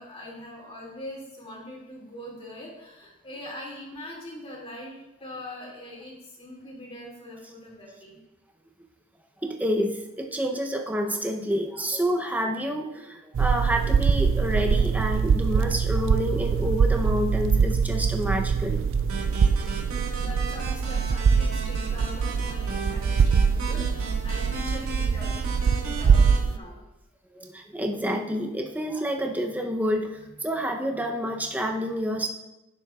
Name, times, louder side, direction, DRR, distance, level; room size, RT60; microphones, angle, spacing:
voice 1, 0.0-8.2 20.2-26.8, left 1 dB, 25° left, -3 dB, 2.5 m, -42 dB
voice 2, 9.4-18.8 27.3-32.3, equal, 5° right, 2 dB, 0.7 m, -28 dB
sound 1, 13.3-26.6, right 6 dB, 60° right, 0.3 m, -23 dB
sound 2, 19.1-26.4, right 3 dB, 75° right, 1.9 m, -37 dB
16.0 x 7.0 x 2.4 m, 0.95 s
head